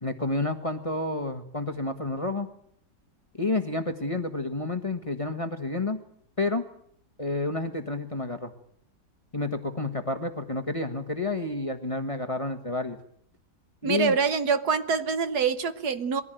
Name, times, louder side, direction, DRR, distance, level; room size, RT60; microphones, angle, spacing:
voice 1, 0.0-2.5 3.3-6.0 6.4-6.6 7.2-8.5 9.3-13.0 13.8-14.2, left 2 dB, 20° left, 7 dB, 1.4 m, -30 dB
voice 2, 13.8-16.2, right 5 dB, 65° right, 12 dB, 1.6 m, -25 dB
22.5 x 15.5 x 9.1 m, 0.68 s
omnidirectional pair, 2.0 m